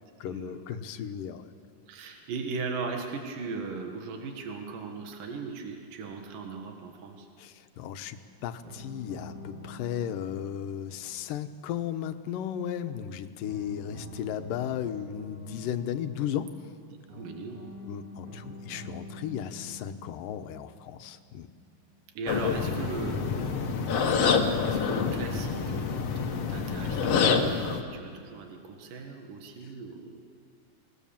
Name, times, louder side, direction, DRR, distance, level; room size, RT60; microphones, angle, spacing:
voice 1, 0.2-1.4 7.4-16.5 17.9-21.5, left 9 dB, 85° left, 9 dB, 2.6 m, -35 dB
voice 2, 1.9-7.3 17.1-17.6 22.1-23.5 24.6-30.2, right 4 dB, 75° right, 3 dB, 3.3 m, -38 dB
sound 1, 8.6-12.7 13.5-22.3 23.1-24.2, equal, 60° right, 5.7 m, -47 dB
sound 2, 22.3-27.8, left 6 dB, 55° left, 2.2 m, -27 dB
27.5 x 19.0 x 7.2 m, 2.2 s
omnidirectional pair, 3.8 m